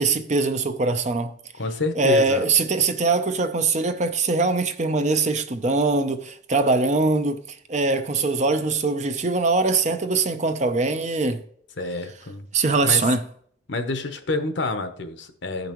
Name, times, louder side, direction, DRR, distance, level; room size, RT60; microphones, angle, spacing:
voice 1, 0.0-1.4 2.0-7.4 7.7-11.4 12.5-13.2, right 3 dB, 35° right, 0.6 m, -22 dB
voice 2, 1.6-2.5 11.8-12.5 12.8-13.1 13.7-15.7, left 2 dB, 65° left, 0.8 m, -28 dB
15.0 x 5.3 x 3.0 m
head